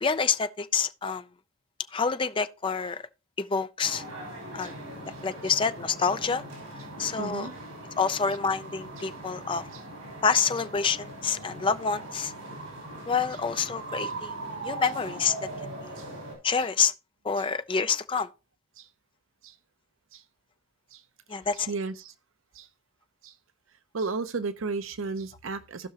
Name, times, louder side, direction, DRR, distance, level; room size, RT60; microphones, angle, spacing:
voice 1, 0.0-1.2 1.9-3.0 3.4-4.0 4.5-4.7 5.2-6.4 7.0-7.5 8.0-9.6 10.2-12.3 13.1-14.4 14.6-15.3 15.6-15.9 16.4-16.9 17.2-18.3 21.3-21.7, left 5 dB, 25° left, 0.4 m, -27 dB
sound 1, 3.8-16.3, right 2 dB, 85° right, 5.7 m, -40 dB
voice 2, 7.2-7.5 9.0-9.1 9.7-9.8 16.0-16.1 17.4-17.5 18.8-18.9 19.4-19.5 20.1-20.2 20.9-21.0 21.7-22.1 22.5-22.7 23.2-23.3 23.9-25.9, right 4 dB, 70° right, 0.6 m, -34 dB
17.0 x 5.8 x 2.9 m
head